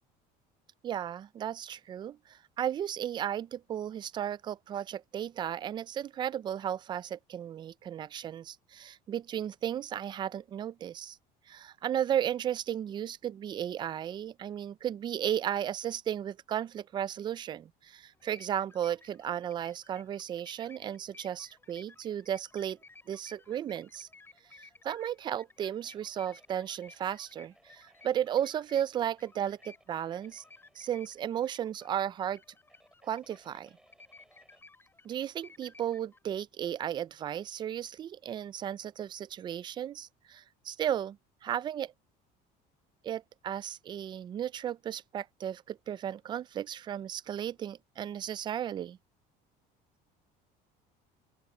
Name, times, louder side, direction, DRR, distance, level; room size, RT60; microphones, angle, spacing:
voice 1, 0.8-11.2 11.5-22.8 23.1-24.1 24.6-30.4 30.8-32.4 33.0-33.7 35.0-41.2 41.4-41.9 43.0-49.0, right 10 dB, 25° right, 0.3 m, -34 dB
sound 1, 18.1-36.2, left 3 dB, 10° left, 4.0 m, -58 dB
sound 2, 25.6-34.6, right 1 dB, 5° right, 7.7 m, -67 dB
open air
cardioid pair, 160°, 18 cm